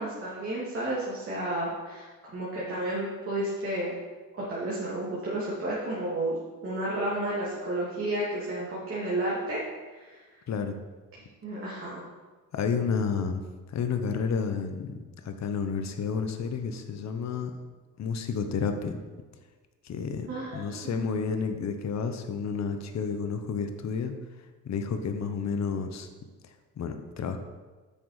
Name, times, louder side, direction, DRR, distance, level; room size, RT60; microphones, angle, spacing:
voice 1, 0.0-4.0 4.3-9.6 9.9-10.2 11.4-12.0 20.3-21.2, right 1 dB, 40° right, -7 dB, 2.4 m, -32 dB
voice 2, 10.5-10.8 12.5-15.0 15.2-17.5 18.0-19.0 19.8-20.3 20.5-24.1 24.6-26.1 26.4-27.4, left 5 dB, 50° left, 7 dB, 0.9 m, -31 dB
8.8 x 6.3 x 4.9 m, 1.3 s
cardioid pair, 115°, 34 cm